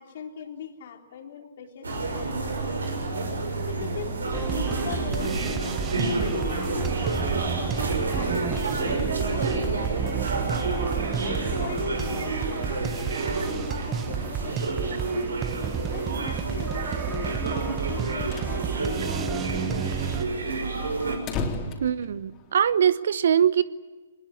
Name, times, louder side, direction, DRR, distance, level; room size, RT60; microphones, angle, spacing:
voice 1, 0.0-2.8 3.6-5.8 6.2-8.8 9.3-10.9 11.2-13.3 13.9-14.8 15.9-20.2, left 8 dB, 55° left, 3.7 m, -40 dB
sound 1, 1.8-21.2, right 3 dB, 80° right, 6.3 m, -29 dB
sound 2, 4.3-20.2, right 8 dB, 20° right, 1.0 m, -32 dB
sound 3, 18.3-18.6 18.9-19.0 19.2-19.3 19.8-22.8, left 4 dB, 25° left, 4.0 m, -35 dB
voice 2, 21.8-23.6, right 8 dB, 65° right, 0.9 m, -22 dB
23.5 x 21.0 x 9.8 m
hypercardioid pair, 130°, 0 cm